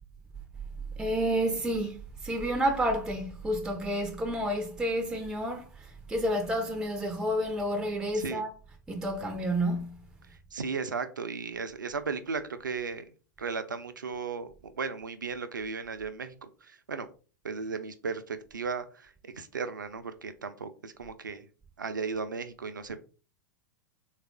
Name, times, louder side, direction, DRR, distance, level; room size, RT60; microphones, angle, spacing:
voice 1, 1.0-8.6 8.9-10.0, equal, 5° right, 0.4 m, -30 dB
voice 2, 10.3-13.1 13.4-17.1 17.4-21.5 21.8-23.0, right 5 dB, 75° right, 0.5 m, -36 dB
3.5 x 2.4 x 3.4 m
figure-of-eight pair, 95°, 10 cm